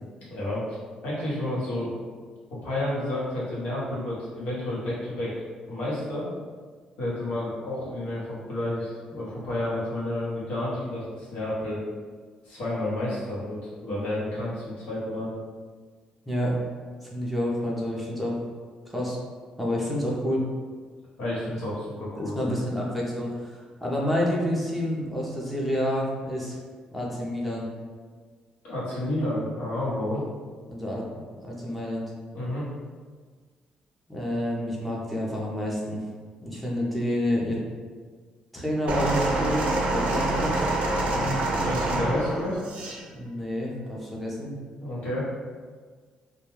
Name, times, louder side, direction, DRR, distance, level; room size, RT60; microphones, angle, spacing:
voice 1, 0.3-0.8 1.0-1.9 2.6-6.3 7.0-11.8 12.4-15.3 21.2-22.5 28.6-30.2 32.3-32.7 40.9-42.6 44.8-45.3, left 1 dB, 85° left, -8 dB, 1.0 m, -30 dB
voice 2, 16.3-16.6 17.0-18.4 18.9-19.2 19.6-20.4 22.2-26.6 26.9-27.6 30.7-31.0 31.3-32.0 34.1-36.0 36.4-37.6 38.5-40.7 43.1-44.5, equal, ahead, -4 dB, 0.5 m, -29 dB
sound 1, 38.9-43.0 43.9-44.0, right 2 dB, 60° right, 0.4 m, -26 dB
2.2 x 2.2 x 3.0 m, 1.5 s
cardioid pair, 145°, 2 cm